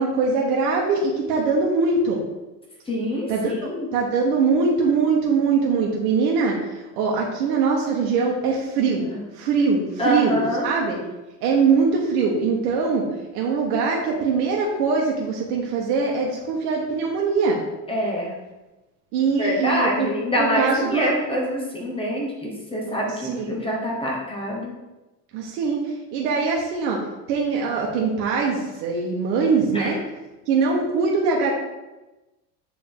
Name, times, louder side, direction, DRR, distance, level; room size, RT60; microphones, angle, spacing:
voice 1, 0.0-2.2 3.3-3.5 3.9-9.1 9.3-10.4 10.6-11.0 11.4-13.1 13.3-17.6 19.1-20.1 20.4-21.1 23.2-23.5 25.3-25.8 26.1-27.0 27.3-30.0 30.5-31.5, right 4 dB, 80° right, -2 dB, 1.2 m, -22 dB
voice 2, 2.9-3.9 9.1-9.2 10.0-10.7 17.9-18.3 19.4-24.7 29.7-30.0, equal, 10° left, -2 dB, 1.0 m, -25 dB
7.3 x 3.7 x 3.7 m, 1.1 s
cardioid pair, 155°, 46 cm